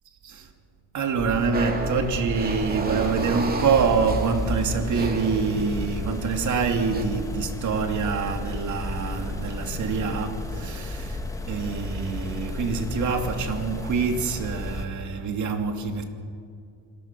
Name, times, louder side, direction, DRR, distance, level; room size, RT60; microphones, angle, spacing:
voice 1, 0.9-11.2 11.5-16.0, right 5 dB, 45° right, 2.7 m, -26 dB
sound 1, 1.2-14.9, left 1 dB, 10° left, 1.9 m, -33 dB
sound 2, 1.5-6.0 6.7-7.0, right 3 dB, 25° right, 2.5 m, -33 dB
26.5 x 21.0 x 6.0 m
cardioid pair, 120°, 39 cm